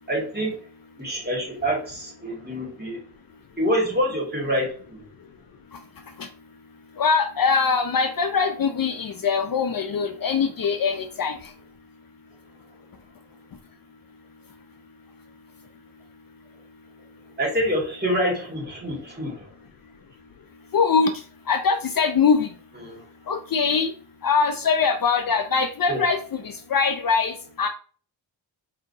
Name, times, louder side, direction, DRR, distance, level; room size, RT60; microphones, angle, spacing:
voice 1, 0.1-0.6 1.0-3.0 3.6-5.0 17.4-19.4 22.8-23.0 25.9-26.0, equal, 20° right, -1 dB, 2.0 m, -26 dB
voice 2, 7.0-11.5 20.7-21.1 21.5-22.5 23.3-23.9 24.2-27.7, left 5 dB, 50° left, 6 dB, 0.6 m, -22 dB
4.9 x 2.8 x 2.7 m, 0.41 s
cardioid pair, 60°, 45 cm